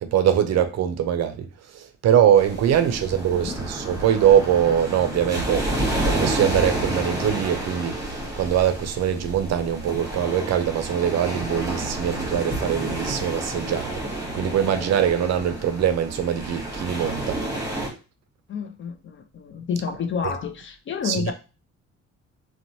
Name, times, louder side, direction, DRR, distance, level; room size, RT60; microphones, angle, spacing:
voice 1, 0.0-8.0 8.4-17.4 21.0-21.3, right 9 dB, 60° right, 0.5 m, -22 dB
sound 1, 2.4-17.9, right 1 dB, 10° right, 1.0 m, -30 dB
voice 2, 18.5-21.3, left 6 dB, 40° left, 0.4 m, -29 dB
2.9 x 2.1 x 2.7 m
cardioid pair, 90°, 30 cm